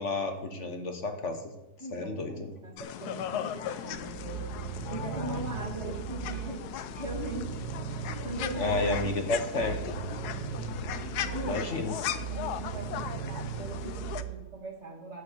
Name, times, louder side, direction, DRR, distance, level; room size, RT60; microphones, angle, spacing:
voice 1, 0.0-1.4 1.9-2.5 8.6-9.8 11.4-11.9, left 2 dB, 45° left, 5 dB, 1.6 m, -31 dB
voice 2, 1.8-4.5 4.8-7.6 7.9-9.8 10.1-10.3 11.0-11.8 12.3-15.2, right 1 dB, 40° right, 1 dB, 2.5 m, -40 dB
sound 1, 2.8-14.2, left 10 dB, 70° left, 1.2 m, -37 dB
sound 2, 3.9-14.6, right 11 dB, 85° right, 1.4 m, -39 dB
11.5 x 9.0 x 7.0 m, 0.92 s
omnidirectional pair, 1.9 m